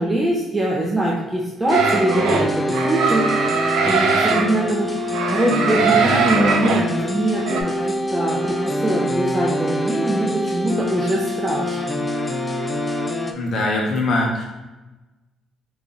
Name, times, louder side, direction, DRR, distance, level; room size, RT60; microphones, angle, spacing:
voice 1, 0.0-3.5 3.8-12.0, right 1 dB, 15° right, -4 dB, 0.7 m, -23 dB
sound 1, 1.7-13.3, left 1 dB, 20° left, 0.4 m, -25 dB
sound 2, 1.7-2.5 2.7-4.5 5.0-6.8 7.4-7.6, right 5 dB, 85° right, 0.6 m, -21 dB
voice 2, 13.3-14.5, left 2 dB, 60° left, -1 dB, 1.1 m, -21 dB
3.7 x 3.0 x 3.9 m, 1.1 s
cardioid pair, 95°, 0 cm